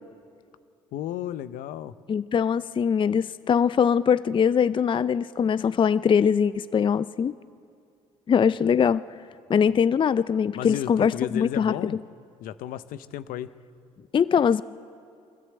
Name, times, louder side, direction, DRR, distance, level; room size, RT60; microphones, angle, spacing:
voice 1, 0.9-1.9 10.5-12.0 12.4-13.5, left 11 dB, 70° left, 14 dB, 0.7 m, -33 dB
voice 2, 2.1-7.3 8.3-9.0 9.5-11.9 14.1-14.6, left 7 dB, 35° left, 17 dB, 0.4 m, -22 dB
23.5 x 14.0 x 7.8 m, 2.4 s
hypercardioid pair, 55°, 15 cm